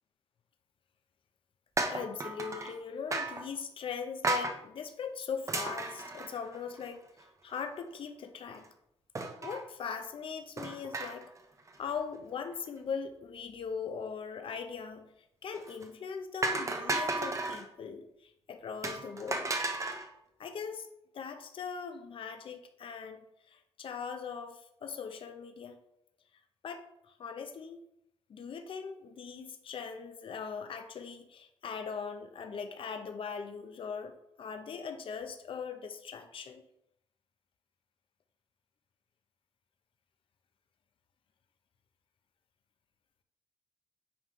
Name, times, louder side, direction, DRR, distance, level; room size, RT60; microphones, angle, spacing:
sound 1, 1.8-2.8 3.1-3.5 4.2-4.6 5.5-6.8 7.2-7.3 7.6-7.7 9.1-9.7 10.6-11.4 11.7-12.0 15.5-15.9 16.4-17.6 18.8-20.1, right 2 dB, 30° right, 0.9 m, -34 dB
voice 1, 1.9-7.0 7.4-8.6 9.4-11.3 11.8-15.1 15.4-19.5 20.4-20.9 21.1-25.8 26.6-27.8 28.3-36.6, left 6 dB, 55° left, 6 dB, 0.8 m, -40 dB
8.7 x 3.2 x 5.4 m, 0.78 s
cardioid pair, 110°, 11 cm